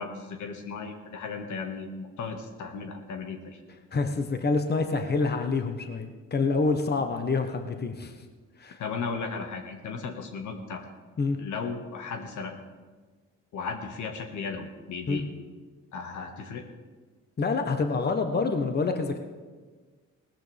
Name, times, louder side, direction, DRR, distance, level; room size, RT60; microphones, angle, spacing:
voice 1, 0.0-3.6 8.8-10.8 11.4-12.6 13.5-15.3 15.9-16.6, left 5 dB, 75° left, 4 dB, 1.7 m, -35 dB
voice 2, 3.9-8.1 8.6-8.8 10.1-10.2 11.2-11.4 15.1-15.2 17.4-19.2, left 4 dB, 35° left, 6 dB, 1.2 m, -27 dB
18.0 x 14.0 x 3.5 m, 1.4 s
cardioid pair, 90°, 30 cm